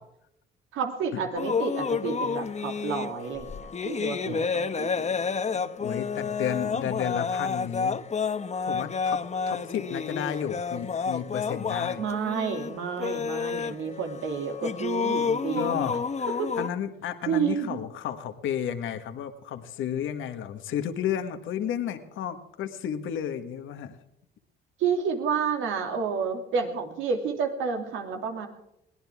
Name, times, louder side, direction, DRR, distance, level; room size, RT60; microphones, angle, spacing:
voice 1, 0.7-5.6 12.0-15.8 16.4-16.5 17.3-17.8 24.8-28.5, right 6 dB, 85° right, 4 dB, 2.7 m, -30 dB
sound 1, 1.4-16.7, left 5 dB, 35° left, 1.0 m, -30 dB
voice 2, 5.8-8.0 8.6-9.2 9.5-12.0 13.6-13.7 15.5-16.3 16.6-24.0, left 9 dB, 80° left, 7 dB, 1.6 m, -32 dB
22.0 x 17.5 x 3.6 m, 0.82 s
cardioid pair, 90°, 20 cm